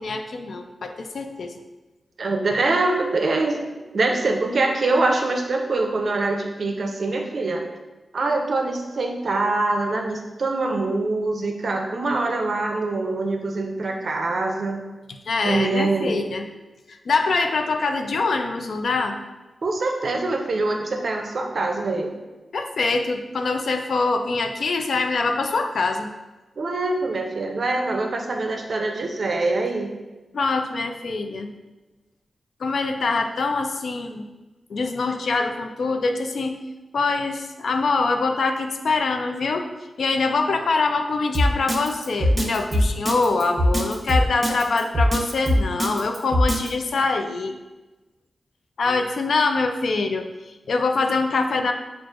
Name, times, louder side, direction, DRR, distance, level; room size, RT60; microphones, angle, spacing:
voice 1, 0.0-1.5 15.3-16.5 16.9-19.2 22.5-26.1 30.3-31.5 32.6-34.3 34.7-36.6 36.9-39.7 40.0-47.5 48.8-51.7, left 3 dB, 75° left, 5 dB, 0.3 m, -24 dB
voice 2, 2.2-3.6 3.9-7.6 8.1-14.8 15.4-16.2 19.6-22.2 26.6-29.9 48.9-49.0, right 2 dB, 60° right, 3 dB, 0.5 m, -24 dB
Drum kit, 41.3-46.7, equal, 35° right, 0.8 m, -20 dB
5.9 x 2.4 x 2.4 m, 1.1 s
wide cardioid pair, 95°, 0 cm